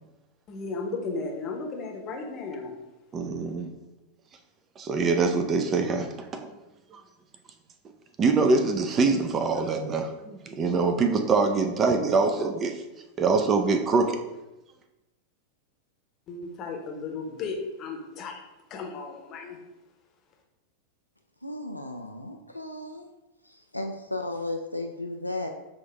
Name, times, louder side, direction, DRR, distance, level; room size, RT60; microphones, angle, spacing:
voice 1, 0.5-2.8 16.3-18.4 18.7-19.6, left 4 dB, 35° left, 2 dB, 0.8 m, -35 dB
voice 2, 3.1-3.7 4.8-6.4 6.9-7.0 8.2-12.8 13.2-14.2, right 4 dB, 25° right, 6 dB, 0.5 m, -24 dB
voice 3, 21.4-23.1 23.4-25.5, left 2 dB, 85° left, 3 dB, 0.3 m, -34 dB
6.1 x 2.6 x 3.4 m, 0.99 s
figure-of-eight pair, 90°, 0 cm